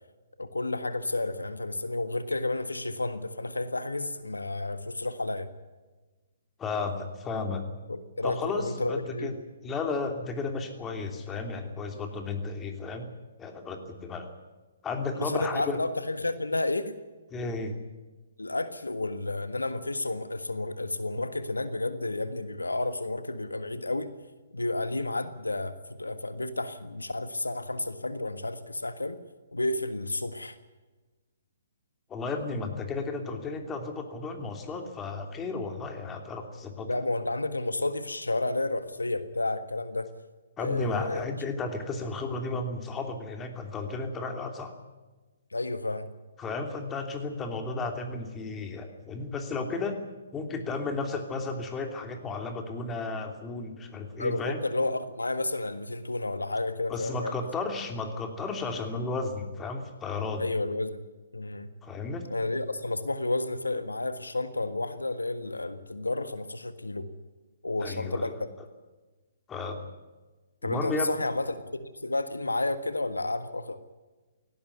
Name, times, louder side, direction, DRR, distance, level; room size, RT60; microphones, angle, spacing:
voice 1, 0.4-5.5 7.9-9.3 15.1-16.9 18.4-24.1 24.5-29.2 29.5-30.6 36.9-40.1 40.6-41.3 45.5-46.1 54.2-57.4 60.4-61.0 61.3-61.7 62.3-67.1 67.6-68.3 70.6-73.8, left 2 dB, 90° left, 11 dB, 1.5 m, -31 dB
voice 2, 6.6-7.6 8.2-9.3 9.6-13.1 13.4-14.3 14.8-15.8 17.3-17.8 32.1-36.9 40.6-44.7 46.4-50.0 50.3-54.6 56.9-60.5 61.8-62.3 67.8-68.2 69.5-69.9 70.6-71.1, left 3 dB, 15° left, 5 dB, 3.0 m, -33 dB
18.0 x 17.5 x 9.6 m, 1.2 s
figure-of-eight pair, 130°, 0 cm